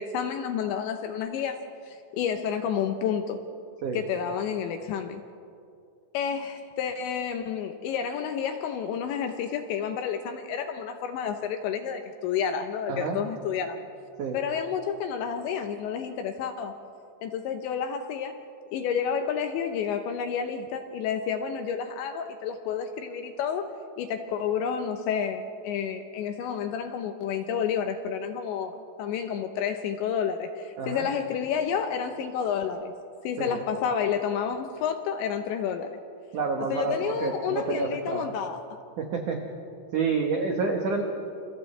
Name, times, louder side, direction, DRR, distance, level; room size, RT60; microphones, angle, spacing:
voice 1, 0.0-1.6 1.9-3.4 3.9-5.2 6.1-13.9 14.3-16.7 17.2-18.4 18.7-23.7 24.0-32.9 33.2-36.0 36.7-38.8, left 7 dB, 75° left, 6 dB, 2.8 m, -30 dB
voice 2, 36.3-38.3 39.0-39.4 39.9-41.0, right 4 dB, 90° right, 2 dB, 1.8 m, -28 dB
29.5 x 28.5 x 3.3 m, 2.5 s
omnidirectional pair, 6.0 m